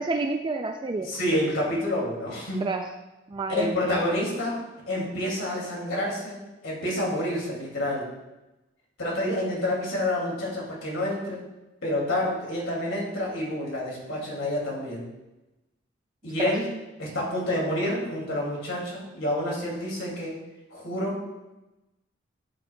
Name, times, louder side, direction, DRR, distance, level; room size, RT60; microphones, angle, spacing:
voice 1, 0.0-1.1 2.6-2.8 3.3-4.0 16.4-16.5, right 3 dB, 25° right, 5 dB, 0.3 m, -29 dB
voice 2, 1.0-2.6 3.5-4.6 4.9-8.0 9.0-11.4 11.8-15.1 16.2-16.6 17.0-20.4 20.7-21.2, left 1 dB, 75° left, -3 dB, 2.5 m, -28 dB
11.5 x 6.1 x 2.3 m, 1.0 s
head